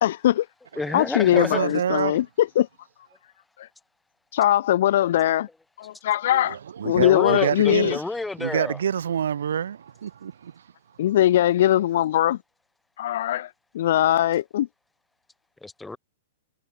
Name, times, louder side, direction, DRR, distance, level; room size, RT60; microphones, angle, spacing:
voice 1, 0.0-0.5 0.9-2.7 4.3-5.5 5.8-6.6 6.8-8.0 11.0-12.4 13.0-13.5 13.7-14.7, left 12 dB, 60° left, 0.5 m, -21 dB
voice 2, 0.8-1.6 6.9-8.8 15.6-16.0, left 2 dB, 5° left, 2.6 m, -29 dB
voice 3, 1.3-2.2 6.3-8.0 8.4-10.7, right 8 dB, 75° right, 3.8 m, -27 dB
hypercardioid pair, 115°, 0 cm